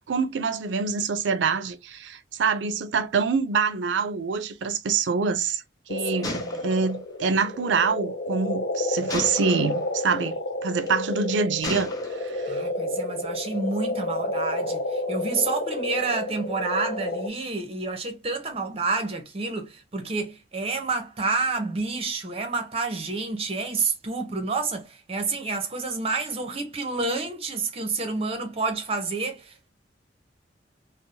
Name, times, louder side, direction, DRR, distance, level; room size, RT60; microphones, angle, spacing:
voice 1, 0.0-5.6 5.9-12.5, right 5 dB, 85° right, 0.4 m, -26 dB
sound 1, 5.9-17.3, left 1 dB, 70° left, 0.6 m, -30 dB
Gunshot gunfire, 6.2-7.5 9.1-9.9 10.7-11.0 11.6-12.4, left 2 dB, 20° left, 0.5 m, -35 dB
voice 2, 6.2-6.6 12.5-29.7, right 3 dB, 35° right, 0.7 m, -29 dB
2.7 x 2.0 x 2.8 m
head